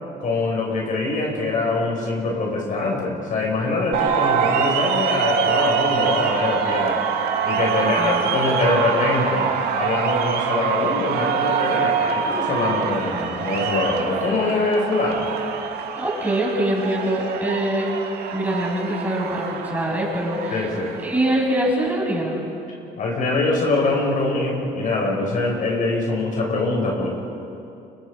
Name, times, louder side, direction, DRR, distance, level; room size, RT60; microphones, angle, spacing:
voice 1, 0.2-7.0 7.4-9.5 9.7-15.3 20.5-21.0 23.0-27.1, left 2 dB, 50° left, -1 dB, 6.7 m, -23 dB
sound 1, 3.9-21.7, right 7 dB, 75° right, 2.4 m, -25 dB
voice 2, 7.7-8.3 16.0-17.9 18.3-20.7 21.0-22.4, right 1 dB, 10° right, -3 dB, 7.7 m, -24 dB
30.0 x 26.0 x 5.4 m, 2.6 s
cardioid pair, 110°, 17 cm